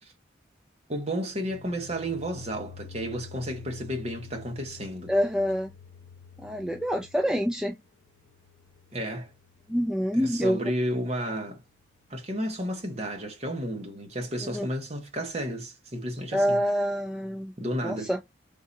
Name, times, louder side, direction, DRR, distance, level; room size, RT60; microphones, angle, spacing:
voice 1, 0.9-5.1 8.9-9.3 10.1-11.6 12.1-16.6 17.6-18.1, equal, 35° right, 1.0 m, -32 dB
sound 1, 1.3-10.2, left 6 dB, 80° left, 0.5 m, -49 dB
voice 2, 5.1-5.7 6.4-7.8 9.7-10.6 14.4-14.7 16.3-17.5 17.8-18.2, equal, 5° right, 0.3 m, -26 dB
3.7 x 2.7 x 4.0 m
head